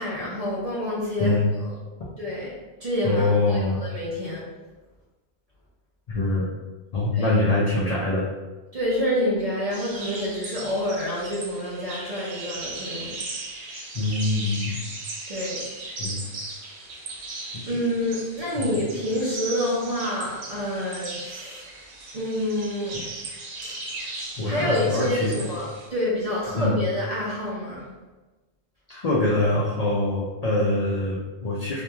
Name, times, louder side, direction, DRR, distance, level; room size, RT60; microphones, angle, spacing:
voice 1, 0.0-1.8 2.2-4.4 7.1-7.4 8.7-13.1 15.3-15.6 17.7-21.7 22.1-23.0 23.6-23.7 24.4-27.9, left 1 dB, 45° right, -7 dB, 0.5 m, -28 dB
voice 2, 3.0-3.8 6.1-6.5 6.9-8.2 13.9-14.8 16.0-16.2 18.6-18.7 24.4-25.3 26.6-26.8 28.9-31.8, left 2 dB, 65° left, -6 dB, 0.4 m, -24 dB
sound 1, 9.7-25.9, right 3 dB, 90° right, 0.9 m, -37 dB
2.9 x 2.5 x 2.2 m, 1.2 s
omnidirectional pair, 1.2 m